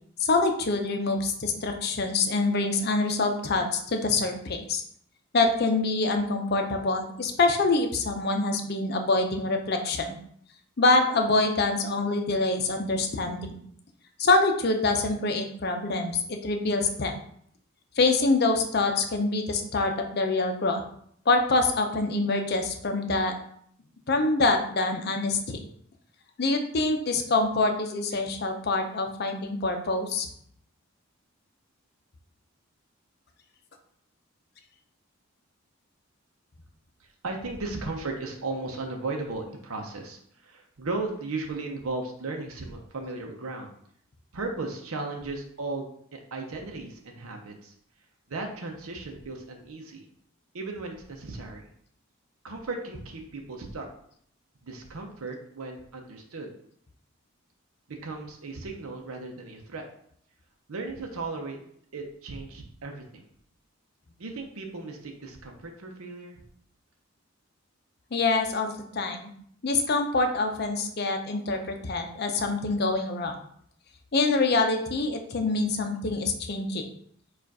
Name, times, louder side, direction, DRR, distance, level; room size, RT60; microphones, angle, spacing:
voice 1, 0.2-4.8 5.3-10.1 10.8-13.6 14.2-17.1 18.0-20.8 21.3-23.3 24.1-25.6 26.4-30.3 68.1-69.3 69.6-73.3 74.1-76.8, left 3 dB, 45° left, 5 dB, 0.5 m, -25 dB
voice 2, 37.0-43.7 44.3-47.7 48.3-50.1 50.5-51.7 52.4-53.9 54.6-56.5 57.9-59.8 60.7-61.6 61.9-63.2 64.2-66.4, right 3 dB, 80° right, 2 dB, 0.7 m, -36 dB
4.6 x 2.4 x 4.7 m, 0.65 s
head